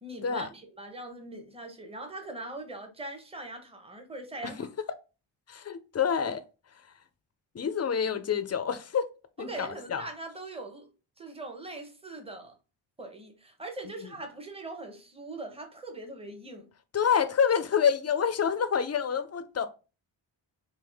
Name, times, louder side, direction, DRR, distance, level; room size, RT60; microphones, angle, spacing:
voice 1, 0.0-4.7 9.4-10.9 11.2-12.6 13.0-16.7, right 2 dB, 10° right, 0.7 m, -41 dB
voice 2, 5.5-6.4 7.5-9.0 9.4-10.1 16.9-19.7, left 7 dB, 35° left, 0.4 m, -27 dB
3.5 x 2.7 x 3.3 m
wide cardioid pair, 150°, 48 cm